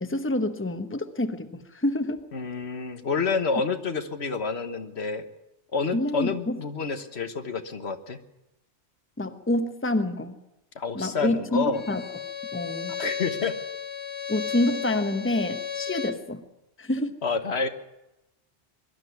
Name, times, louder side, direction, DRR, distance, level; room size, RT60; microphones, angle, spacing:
voice 1, 0.0-2.2 5.9-6.6 9.2-10.4 10.9-12.0 12.5-12.9 14.3-16.4 16.8-17.2, left 1 dB, 10° left, 8 dB, 1.1 m, -27 dB
voice 2, 2.3-5.3 5.7-8.2 10.7-11.8 13.0-13.6 17.0-17.7, left 4 dB, 70° left, 8 dB, 1.6 m, -28 dB
Bowed string instrument, 11.7-16.3, left 7 dB, 30° left, 0.7 m, -34 dB
22.5 x 12.5 x 9.5 m, 0.96 s
omnidirectional pair, 1.1 m